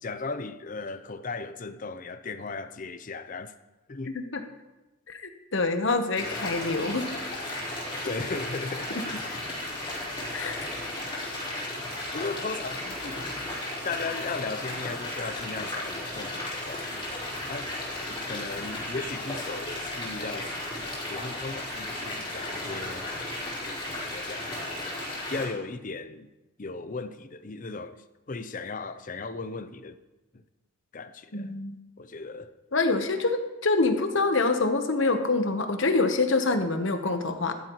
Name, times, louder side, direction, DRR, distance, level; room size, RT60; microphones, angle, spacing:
voice 1, 0.0-3.5 3.9-4.1 8.0-8.9 10.5-10.7 12.1-13.2 13.8-17.7 18.1-20.5 21.1-23.1 24.1-24.5 25.3-26.3 26.6-28.0 28.3-29.9 30.3-30.4 30.9-31.5 32.0-32.6, left 3 dB, 40° left, 0.6 m, -36 dB
voice 2, 4.0-4.4 5.1-7.1 10.3-10.6 31.3-31.8 32.7-37.5, left 3 dB, 60° left, 1.1 m, -26 dB
sound 1, 6.1-25.5, left 1 dB, 20° left, 4.0 m, -35 dB
14.5 x 11.5 x 3.1 m
head